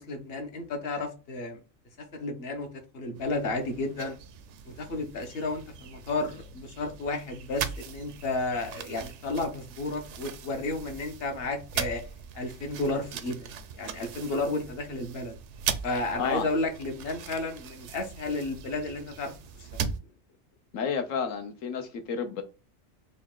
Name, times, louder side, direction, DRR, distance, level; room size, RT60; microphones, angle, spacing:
voice 1, 0.0-1.6 2.1-2.7 2.9-4.2 4.7-12.0 12.3-13.5 13.8-15.4 15.8-19.3 19.6-19.8, left 2 dB, 50° left, 1.0 m, -32 dB
sound 1, 3.2-20.0, right 7 dB, 70° right, 0.8 m, -39 dB
voice 2, 20.7-22.4, left 6 dB, 70° left, 1.1 m, -31 dB
4.0 x 2.3 x 3.6 m
omnidirectional pair, 1.4 m